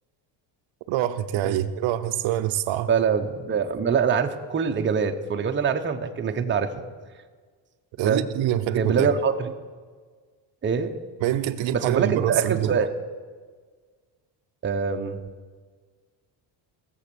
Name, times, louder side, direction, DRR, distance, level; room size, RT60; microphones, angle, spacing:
voice 1, 0.9-2.9 8.0-9.1 11.2-12.8, right 12 dB, 80° right, 0.8 m, -25 dB
voice 2, 2.9-6.7 8.0-8.3 8.8-9.5 10.6-11.0 11.7-12.9 14.6-15.2, right 6 dB, 25° right, 0.8 m, -24 dB
18.0 x 7.2 x 6.9 m
cardioid pair, 145°, 46 cm